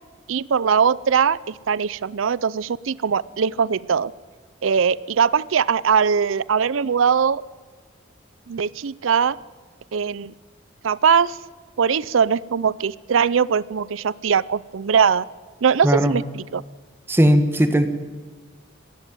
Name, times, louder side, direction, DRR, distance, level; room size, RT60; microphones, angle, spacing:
voice 1, 0.3-4.1 4.6-7.4 8.5-9.4 9.9-10.3 10.8-11.4 11.8-15.2 15.6-16.6, right 6 dB, 90° right, 20 dB, 0.5 m, -21 dB
voice 2, 15.8-16.2 17.1-17.9, equal, 10° right, 9 dB, 1.4 m, -17 dB
21.0 x 15.5 x 9.3 m, 1.5 s
head